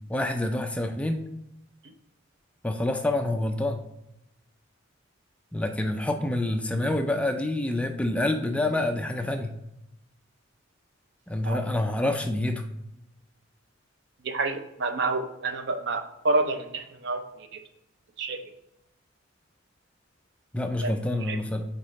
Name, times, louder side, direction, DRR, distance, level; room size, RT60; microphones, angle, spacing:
voice 1, 0.1-1.2 2.6-3.8 5.5-9.5 11.3-12.6 20.5-21.6, left 1 dB, 5° left, 5 dB, 0.4 m, -27 dB
voice 2, 14.2-17.2 17.5-17.6 18.2-18.4 20.8-20.9 21.2-21.4, right 3 dB, 60° right, 8 dB, 0.6 m, -28 dB
9.0 x 3.8 x 3.2 m, 0.85 s
head